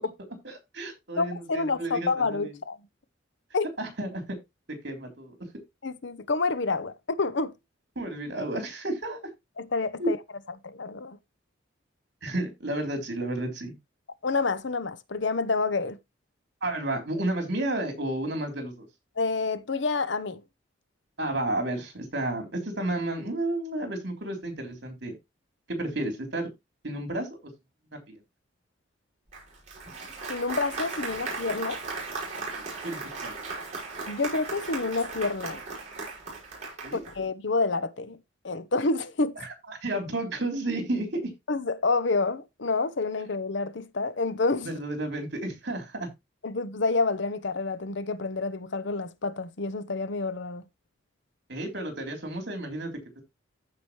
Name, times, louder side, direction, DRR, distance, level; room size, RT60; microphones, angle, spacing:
voice 1, 0.4-2.5 3.8-4.4 4.8-5.4 8.0-9.2 10.0-10.1 12.2-13.7 16.6-18.9 21.2-25.1 25.7-26.5 26.8-27.3 28.1-28.2 32.6-33.3 36.8-37.0 39.7-41.2 44.6-46.1 51.5-53.2, right 1 dB, 60° right, 3.5 m, -32 dB
voice 2, 1.2-2.8 3.5-3.7 5.8-7.5 9.6-10.2 10.6-11.2 14.2-16.0 19.2-20.4 30.3-31.8 34.1-35.6 36.9-38.2 38.4-39.3 41.5-44.7 46.4-50.6, left 3 dB, 60° left, 0.8 m, -28 dB
Applause, 29.3-37.2, right 3 dB, 35° right, 5.8 m, -37 dB
14.5 x 5.0 x 3.1 m
head